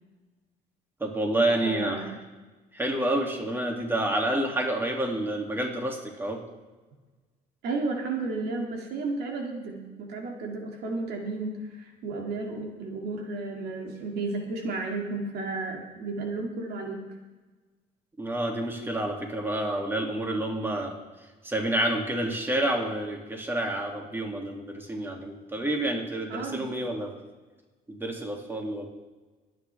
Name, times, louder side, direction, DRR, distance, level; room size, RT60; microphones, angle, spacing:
voice 1, 1.0-2.1 2.7-6.4 18.2-21.0 21.4-27.1 27.9-28.9, right 1 dB, 15° right, 1 dB, 2.5 m, -29 dB
voice 2, 1.6-2.1 7.6-17.0 26.3-26.8, right 3 dB, 75° right, 1 dB, 2.3 m, -33 dB
24.5 x 9.3 x 3.5 m, 1.3 s
cardioid pair, 110°, 17 cm